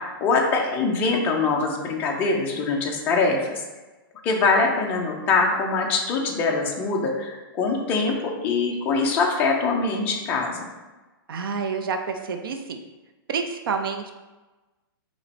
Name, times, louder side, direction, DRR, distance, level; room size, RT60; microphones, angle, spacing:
voice 1, 0.0-3.6 4.2-10.7, left 4 dB, 15° left, 0 dB, 0.4 m, -23 dB
voice 2, 11.3-12.8 13.3-14.1, right 5 dB, 65° right, 5 dB, 0.5 m, -28 dB
4.2 x 2.9 x 4.1 m, 1.2 s
hypercardioid pair, 170°, 13 cm